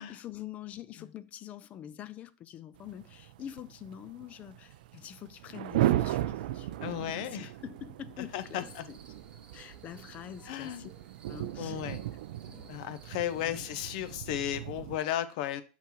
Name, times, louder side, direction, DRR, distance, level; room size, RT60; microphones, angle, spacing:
voice 1, 0.0-6.7 7.2-9.0 9.5-10.9 11.3-12.0 12.5-12.7 13.4-13.6, left 11 dB, 30° left, 0.3 m, -45 dB
sound 1, 2.8-15.0, right 14 dB, 90° right, 0.3 m, -36 dB
voice 2, 6.8-7.5 8.3-8.8 10.5-10.9 11.6-12.0 12.7-15.6, left 12 dB, 65° left, 0.6 m, -34 dB
sound 2, 8.4-14.2, right 4 dB, 20° right, 1.0 m, -57 dB
5.8 x 5.8 x 3.0 m
supercardioid pair, 145°, 5 cm